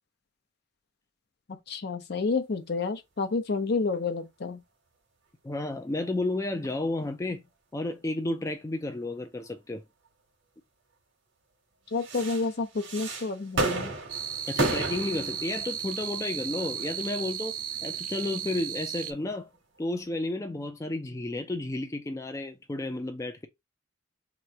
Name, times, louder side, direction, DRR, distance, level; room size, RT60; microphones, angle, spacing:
voice 1, 1.7-4.6 11.9-13.9, left 4 dB, 60° left, 0.6 m, -29 dB
sound 1, 3.9-4.0 6.6-6.7 9.5-9.6 11.9-19.0 19.5-19.8, right 2 dB, 85° right, 1.4 m, -34 dB
voice 2, 5.4-7.4 7.7-9.8 14.5-19.5 19.8-23.5, left 2 dB, 15° left, 0.4 m, -32 dB
sound 2, 14.1-19.1, right 9 dB, 45° right, 0.4 m, -35 dB
3.0 x 2.5 x 4.4 m
head